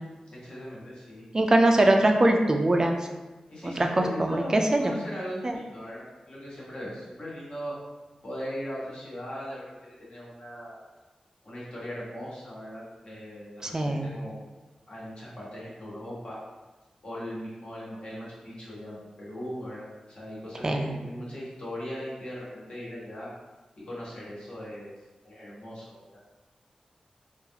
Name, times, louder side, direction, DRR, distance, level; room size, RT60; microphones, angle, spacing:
voice 1, 0.3-1.2 1.7-1.8 3.5-7.7 8.2-9.6 10.0-10.8 11.4-14.3 14.9-16.4 17.0-23.3 23.8-24.9 25.2-26.2, equal, 50° left, -8 dB, 1.3 m, -39 dB
voice 2, 1.3-3.1 3.6-4.9 5.4-5.6 13.6-14.1 20.6-21.0, right 1 dB, 30° right, 3 dB, 0.3 m, -22 dB
3.8 x 2.4 x 2.8 m, 1.2 s
wide cardioid pair, 110°, 2 cm